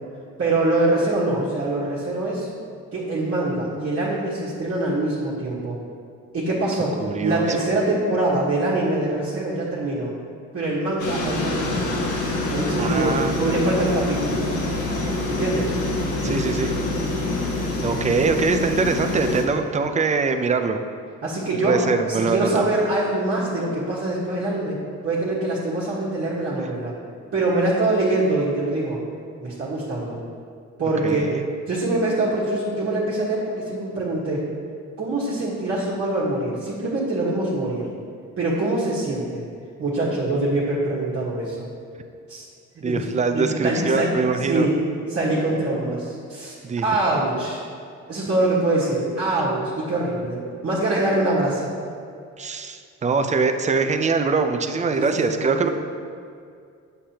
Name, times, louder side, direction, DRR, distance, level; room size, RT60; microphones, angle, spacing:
voice 1, 0.4-2.5 2.9-5.8 6.3-10.1 10.5-12.0 12.5-14.4 15.3-15.8 21.2-26.9 27.3-29.0 29.4-30.2 30.8-31.2 31.7-34.5 35.0-37.9 38.4-39.4 39.8-41.7 42.3-42.4 42.8-43.1 43.3-44.2 44.5-44.8 45.1-46.5 46.8-47.6 48.1-51.7 54.9-55.7, right 2 dB, 50° right, -8 dB, 1.5 m, -24 dB
voice 2, 7.0-7.6 12.8-13.7 16.2-16.8 17.8-20.8 21.6-22.7 31.0-31.4 42.8-44.7 46.6-46.8 52.4-55.7, right 4 dB, 25° right, 7 dB, 0.5 m, -23 dB
sound 1, 11.0-19.4, left 2 dB, 75° left, 1.4 m, -26 dB
7.4 x 6.6 x 2.9 m, 2.3 s
cardioid pair, 90°, 30 cm